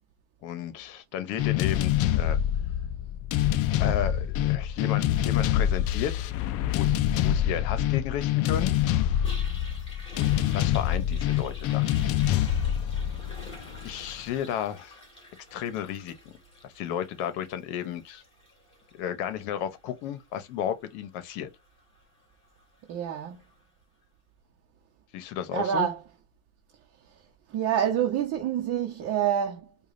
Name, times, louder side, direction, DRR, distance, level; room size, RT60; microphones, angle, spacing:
voice 1, 0.4-2.4 3.8-6.3 6.7-8.8 10.1-11.9 13.8-15.0 15.5-16.4 16.6-18.2 18.9-21.5 25.1-25.9, left 9 dB, 65° left, 0.9 m, -33 dB
sound 1, 1.4-14.1, left 11 dB, 45° left, 0.4 m, -26 dB
Toilet flush, 8.4-23.6, left 1 dB, 15° left, 2.0 m, -50 dB
voice 2, 22.9-23.4 25.5-26.0 27.5-29.9, right 9 dB, 45° right, 0.8 m, -27 dB
4.8 x 2.4 x 2.6 m
supercardioid pair, 120°, 33 cm